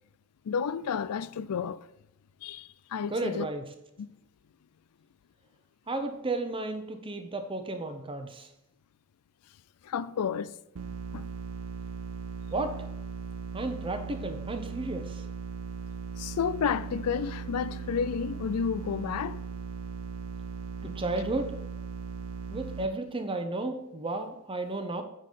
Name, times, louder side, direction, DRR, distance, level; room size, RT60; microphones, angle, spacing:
voice 1, 0.4-1.9 2.4-3.5 4.0-4.1 9.8-10.6 11.1-11.3 16.2-19.4, left 6 dB, 90° left, 0.4 m, -31 dB
voice 2, 3.1-3.7 5.9-8.5 12.5-12.8 13.5-15.2 20.8-21.6 22.5-25.0, right 2 dB, 25° right, 0.8 m, -33 dB
sound 1, 10.8-22.9, right 6 dB, 65° right, 0.6 m, -38 dB
9.2 x 3.9 x 6.6 m
head